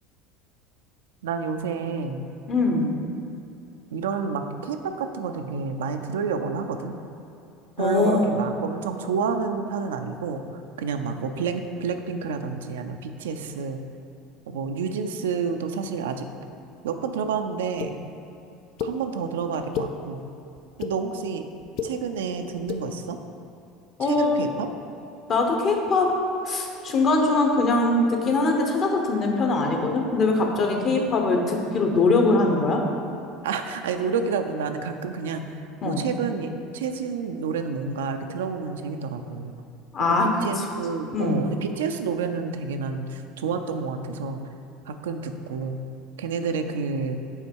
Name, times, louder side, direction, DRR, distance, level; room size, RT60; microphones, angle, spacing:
voice 1, 1.2-2.2 3.9-6.9 7.8-10.4 10.8-13.8 14.5-16.3 16.8-18.0 18.8-20.2 20.8-21.5 21.8-23.2 24.0-24.7 30.8-31.1 33.4-39.5 40.0-44.4 44.9-45.8 46.2-47.2, right 5 dB, 85° right, 6 dB, 0.4 m, -29 dB
voice 2, 2.5-2.9 7.8-8.3 24.0-24.3 25.3-26.1 26.5-32.8 35.8-36.0 39.9-40.3 41.1-41.4, left 3 dB, 45° left, 2 dB, 1.0 m, -22 dB
sound 1, 17.8-17.9 18.8-18.9 19.5-19.9 20.6-20.9 21.6-21.9 22.6-22.8, left 7 dB, 60° left, 0.4 m, -30 dB
5.5 x 4.2 x 4.6 m, 2.8 s
hypercardioid pair, 90°, 0 cm